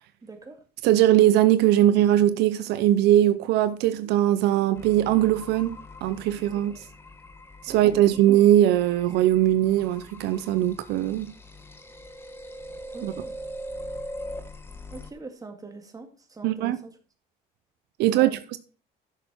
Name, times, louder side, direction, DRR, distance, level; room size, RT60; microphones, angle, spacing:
voice 1, 0.2-0.6 6.7-6.8 7.7-8.0 12.9-13.4 14.9-16.9 18.1-18.3, right 3 dB, 20° right, 2.1 m, -43 dB
voice 2, 0.8-6.7 7.6-11.3 13.0-13.1 16.4-16.8 18.0-18.6, right 12 dB, 85° right, 0.7 m, -21 dB
sound 1, 4.7-15.1, equal, 15° left, 1.3 m, -42 dB
11.0 x 6.7 x 4.4 m
cardioid pair, 110°, 17 cm